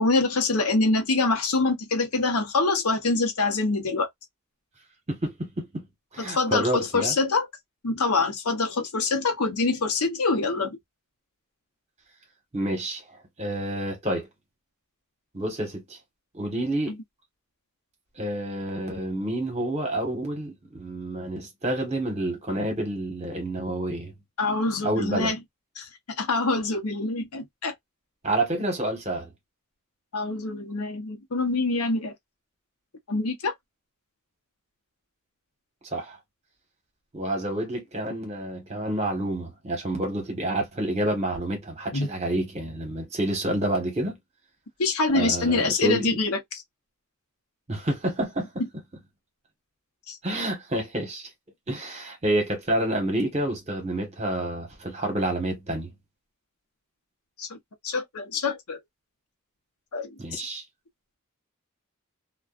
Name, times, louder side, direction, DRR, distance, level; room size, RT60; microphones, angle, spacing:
voice 1, 0.0-4.1 6.2-7.5 7.8-10.8 24.4-25.4 25.8-25.9 26.2-27.7 30.1-32.1 33.1-33.5 41.9-42.1 44.8-46.6 50.1-50.2 57.4-57.6 57.8-58.8 59.9-60.4, left 3 dB, 90° left, 0.8 m, -25 dB
voice 2, 5.1-5.8 6.1-7.1 12.5-14.3 15.3-16.0 16.3-17.0 18.2-24.1 24.8-25.3 28.2-29.3 35.9-36.2 37.1-44.2 45.1-46.2 47.7-48.6 50.2-51.3 51.7-55.9 60.2-60.6, right 1 dB, 30° right, 1.1 m, -29 dB
2.5 x 2.3 x 2.3 m
head